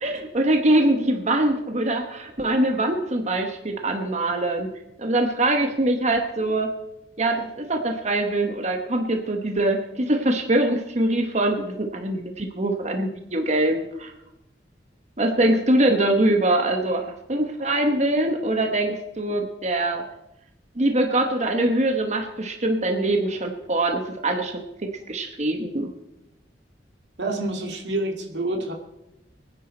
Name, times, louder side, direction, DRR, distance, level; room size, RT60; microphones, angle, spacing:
voice 1, 0.0-4.7 5.0-6.7 7.2-14.1 15.2-20.0 20.7-24.6 25.1-25.9, right 1 dB, 40° right, 4 dB, 1.1 m, -23 dB
voice 2, 27.2-28.7, right 2 dB, 85° right, 2 dB, 2.4 m, -27 dB
24.0 x 9.9 x 4.4 m, 0.90 s
head